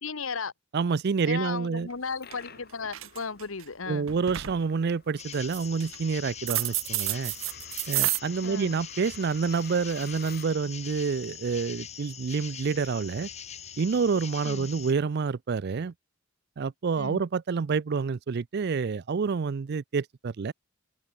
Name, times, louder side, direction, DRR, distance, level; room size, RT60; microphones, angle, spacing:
voice 1, 0.0-0.5 1.2-4.1 8.4-8.8 14.4-14.7 17.0-17.2, left 5 dB, 85° left, 1.4 m, -35 dB
voice 2, 0.7-1.9 3.9-7.3 7.9-13.3 13.8-15.9 16.6-20.5, right 5 dB, 55° right, 0.4 m, -28 dB
Coin (dropping), 1.9-10.7, left 7 dB, 50° left, 4.4 m, -52 dB
sound 1, 1.9-2.0 2.3-2.6 2.9-3.6 4.1-4.6 5.3-6.0 6.5-8.2, right 17 dB, 80° right, 1.1 m, -29 dB
sound 2, 5.2-14.9, left 8 dB, 35° left, 1.8 m, -43 dB
head